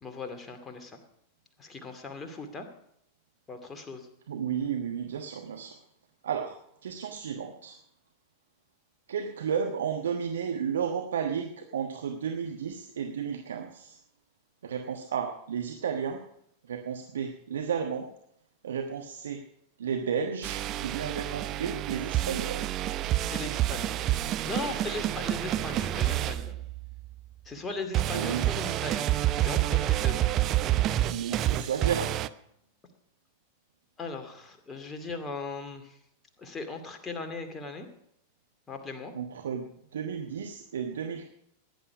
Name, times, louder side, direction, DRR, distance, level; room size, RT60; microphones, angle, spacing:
voice 1, 0.0-1.0 1.6-2.7 3.5-4.1 23.2-24.0 24.4-26.5 27.4-29.1 29.4-30.3 30.7-30.8 34.0-36.0 36.4-37.9 38.7-39.1, left 3 dB, 15° left, 5 dB, 2.3 m, -38 dB
voice 2, 4.3-5.7 6.2-6.6 6.8-7.8 9.1-14.0 14.6-16.2 16.7-18.1 18.6-19.4 19.8-22.6 28.1-28.4 31.1-32.1 39.1-41.3, right 7 dB, 65° right, 4 dB, 1.3 m, -33 dB
sound 1, 20.4-27.1 27.9-32.3, right 14 dB, 35° right, 0.6 m, -28 dB
17.0 x 10.5 x 5.0 m, 0.75 s
figure-of-eight pair, 90°, 0 cm